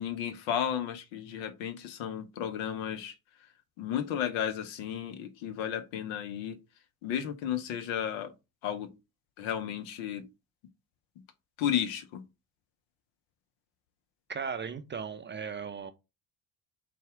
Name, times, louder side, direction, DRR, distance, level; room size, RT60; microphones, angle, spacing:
voice 1, 0.0-3.1 3.8-6.6 7.0-8.3 8.6-8.9 9.4-10.2 11.6-12.2, left 9 dB, 70° left, 0.8 m, -33 dB
voice 2, 14.3-15.9, right 6 dB, 25° right, 0.4 m, -37 dB
4.1 x 2.4 x 3.5 m
hypercardioid pair, 55°, 49 cm